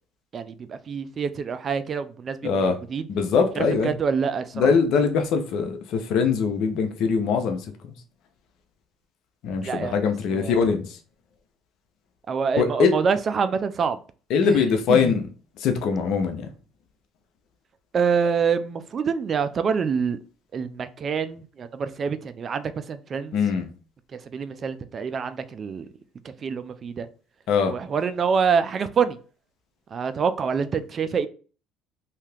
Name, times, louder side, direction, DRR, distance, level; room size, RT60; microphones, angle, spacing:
voice 1, 0.3-3.1 3.6-4.7 9.6-10.7 12.3-14.0 14.4-14.6 14.9-15.1 17.9-20.2 20.5-23.3 24.1-25.9 26.2-27.1 27.7-29.2 29.9-31.3, right 6 dB, 40° right, 0.3 m, -26 dB
voice 2, 2.4-2.8 3.1-3.9 4.5-7.9 9.4-11.0 12.6-12.9 14.3-15.3 15.6-16.5 23.3-23.7 27.5-27.7, left 5 dB, 70° left, 0.7 m, -22 dB
2.8 x 2.3 x 3.3 m
supercardioid pair, 90°, 0 cm